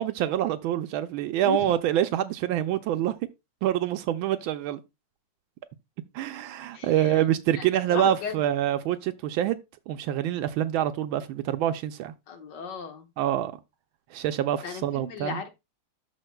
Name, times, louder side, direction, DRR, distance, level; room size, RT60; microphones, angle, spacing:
voice 1, 0.0-3.1 3.6-4.8 6.1-9.6 9.9-12.1 13.2-13.5 14.1-15.4, right 11 dB, 80° right, 1.3 m, -26 dB
voice 2, 1.4-1.7 6.7-7.2 7.5-8.4 12.3-13.1 14.6-15.5, left 5 dB, 60° left, 1.6 m, -36 dB
12.5 x 4.6 x 2.2 m
omnidirectional pair, 2.3 m